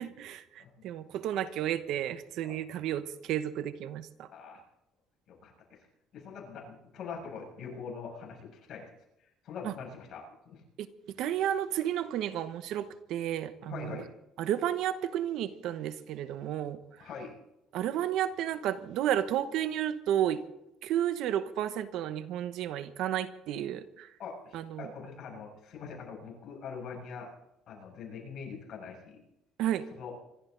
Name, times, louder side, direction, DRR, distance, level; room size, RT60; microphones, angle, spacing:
voice 1, 0.0-4.3 9.6-9.7 10.8-10.9 11.2-14.0 14.4-16.8 17.7-20.4 20.8-24.1 24.5-24.9 29.6-29.8, right 11 dB, 70° right, 12 dB, 1.0 m, -32 dB
voice 2, 4.3-4.6 5.3-5.5 6.1-8.9 9.4-10.6 13.7-14.1 17.0-17.3 24.2-27.3 27.7-29.2 30.0-30.1, left 5 dB, 50° left, -1 dB, 6.9 m, -43 dB
25.5 x 12.5 x 4.0 m, 0.87 s
cardioid pair, 135°, 0 cm